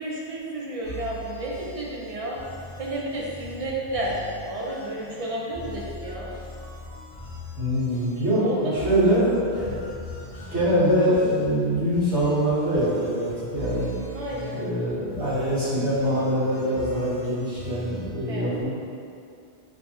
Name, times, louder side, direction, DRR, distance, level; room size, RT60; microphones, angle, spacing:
voice 1, 0.0-2.4 2.8-4.2 4.4-6.3 8.4-8.9 14.1-14.6 18.3-18.5, right 1 dB, 55° right, -4 dB, 0.4 m, -31 dB
sound 1, 0.8-18.1, right 1 dB, 50° left, 0.8 m, -41 dB
voice 2, 7.6-9.7 10.5-13.9 14.5-18.7, equal, 80° right, -11 dB, 1.7 m, -23 dB
5.0 x 2.1 x 2.9 m, 2.6 s
omnidirectional pair, 1.1 m